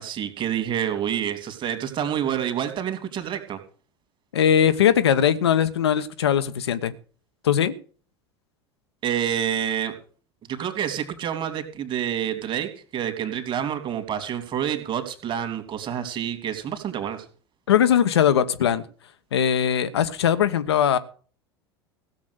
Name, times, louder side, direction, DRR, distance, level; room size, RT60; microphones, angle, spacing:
voice 1, 0.0-3.6 9.0-9.9 10.5-17.2, right 9 dB, 35° right, 2.9 m, -28 dB
voice 2, 4.3-6.9 7.4-7.7 17.7-18.8 19.3-21.0, left 9 dB, 75° left, 1.1 m, -20 dB
16.0 x 7.4 x 6.5 m
figure-of-eight pair, 80°, 14 cm